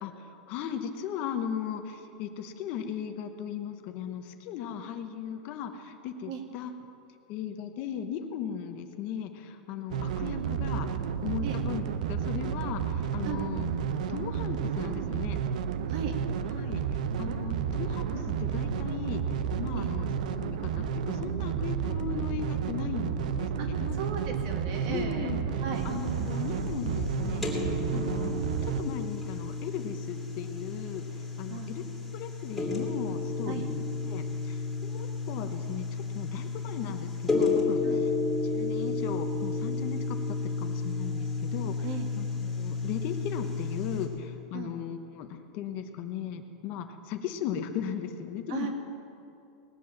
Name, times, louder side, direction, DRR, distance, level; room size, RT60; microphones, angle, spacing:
voice 1, 0.0-6.7 7.3-10.9 11.2-15.4 16.5-24.0 24.9-31.8 32.1-38.1 38.4-48.7, left 8 dB, 40° left, 7 dB, 1.0 m, -37 dB
sound 1, 9.9-28.8, right 7 dB, 80° right, 0.7 m, -31 dB
voice 2, 23.6-25.3 25.6-25.9 27.9-28.1 31.5-31.7 33.5-33.7 37.8-38.1 41.8-42.1 44.5-44.7 48.5-48.7, right 7 dB, 50° right, 4 dB, 1.9 m, -37 dB
sound 2, 25.7-44.1, left 4 dB, 5° left, 2.6 m, -32 dB
19.0 x 7.7 x 7.2 m, 2.6 s
supercardioid pair, 165°, 4 cm